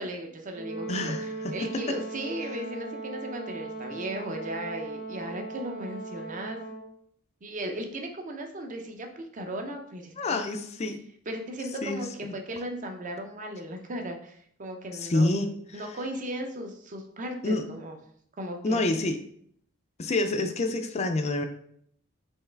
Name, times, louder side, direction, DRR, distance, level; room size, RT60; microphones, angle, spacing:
voice 1, 0.0-6.6 7.4-10.5 11.3-12.1 12.3-15.3 15.7-18.0 18.4-19.0, right 1 dB, 40° right, 4 dB, 0.6 m, -36 dB
Brass instrument, 0.5-6.9, right 3 dB, 60° right, 1.9 m, -38 dB
voice 2, 0.9-1.7 10.2-11.0 11.8-12.3 14.9-15.5 17.4-17.7 18.6-19.2 20.0-21.4, left 2 dB, 30° left, 7 dB, 0.4 m, -27 dB
4.5 x 3.1 x 3.3 m, 0.65 s
head